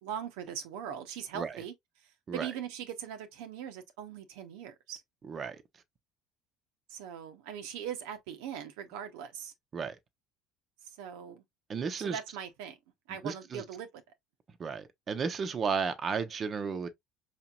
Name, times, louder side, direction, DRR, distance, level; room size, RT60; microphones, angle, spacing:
voice 1, 0.0-1.7 2.0-5.0 6.9-9.5 10.8-11.4 12.0-12.8 13.1-13.9, right 9 dB, 80° right, 0.7 m, -40 dB
voice 2, 5.3-5.6 9.7-10.0 11.7-12.2 13.1-13.6 14.6-16.9, right 5 dB, 40° right, 0.7 m, -33 dB
4.9 x 2.9 x 2.3 m
hypercardioid pair, 80°, 0 cm